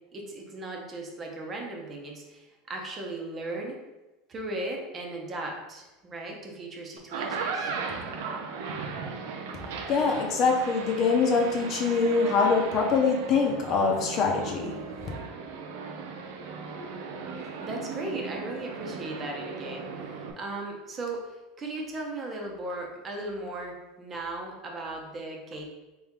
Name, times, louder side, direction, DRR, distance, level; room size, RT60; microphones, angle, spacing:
voice 1, 0.1-3.7 4.3-7.7 17.6-25.6, right 2 dB, 30° right, 0 dB, 0.9 m, -37 dB
sound 1, 7.0-20.3, right 5 dB, 80° right, 0.5 m, -37 dB
voice 2, 9.9-14.8, left 4 dB, 45° left, 1 dB, 0.8 m, -24 dB
3.4 x 3.0 x 3.6 m, 1.1 s
supercardioid pair, 105°, 0 cm